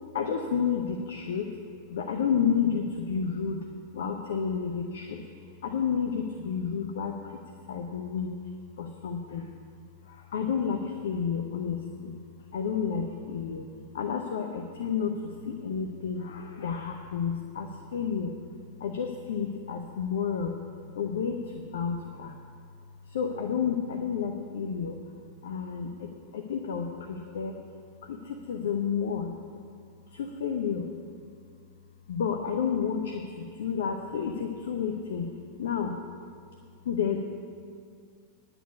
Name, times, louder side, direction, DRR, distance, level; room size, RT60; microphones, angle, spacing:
voice 1, 0.1-1.6 1.9-3.7 3.9-5.2 5.6-8.4 8.8-9.5 10.1-12.2 12.5-13.7 13.9-18.3 18.8-20.6 20.9-22.4 23.1-25.0 25.4-27.6 28.0-29.4 30.1-30.9 32.1-35.3 35.6-36.0 36.8-37.2, left 7 dB, 60° left, 5 dB, 0.8 m, -31 dB
10.0 x 7.0 x 8.3 m, 2.2 s
figure-of-eight pair, 90°, 0 cm